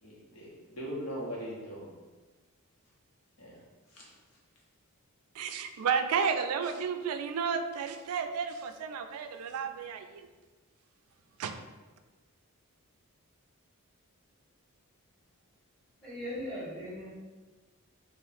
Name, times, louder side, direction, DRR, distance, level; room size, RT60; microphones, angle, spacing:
voice 1, 0.0-1.9 3.4-3.6 3.9-4.1, equal, 80° left, -5 dB, 1.1 m, -40 dB
voice 2, 5.3-10.3 11.4-11.6, right 6 dB, 75° right, 7 dB, 0.3 m, -32 dB
voice 3, 16.0-17.1, equal, 5° left, -9 dB, 1.3 m, -38 dB
2.8 x 2.4 x 4.0 m, 1.3 s
head